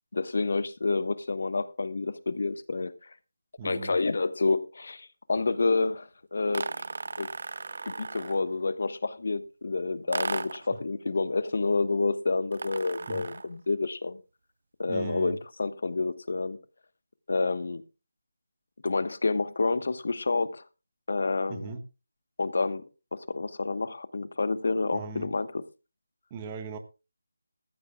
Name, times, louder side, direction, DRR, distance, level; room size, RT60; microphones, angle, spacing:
voice 1, 0.1-3.1 3.6-6.8 7.2-7.3 7.8-14.2 14.8-16.6 17.3-17.8 18.8-20.6 21.1-21.8 22.4-22.8 23.1-25.6, left 3 dB, 60° left, 1.1 m, -29 dB
voice 2, 3.6-3.9 13.1-13.2 14.9-15.4 21.5-21.8 24.9-25.3 26.3-26.8, right 5 dB, 20° right, 1.3 m, -38 dB
sound 1, 6.5-8.5 10.1-10.7 12.5-13.5, right 3 dB, 60° right, 0.5 m, -35 dB
18.5 x 14.0 x 2.3 m
figure-of-eight pair, 165°, 0 cm